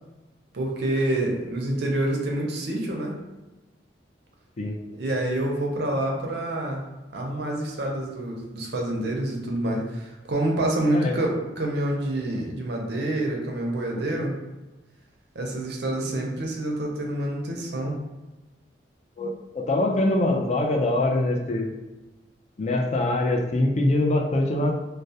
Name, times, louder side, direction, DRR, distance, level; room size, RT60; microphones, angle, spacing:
voice 1, 0.5-3.1 4.9-6.8 7.1-14.4 15.3-18.0, right 1 dB, 65° right, 0 dB, 0.5 m, -27 dB
voice 2, 19.2-21.7 22.6-24.7, left 2 dB, 40° left, 1 dB, 0.3 m, -23 dB
2.2 x 2.0 x 2.6 m, 1.1 s
head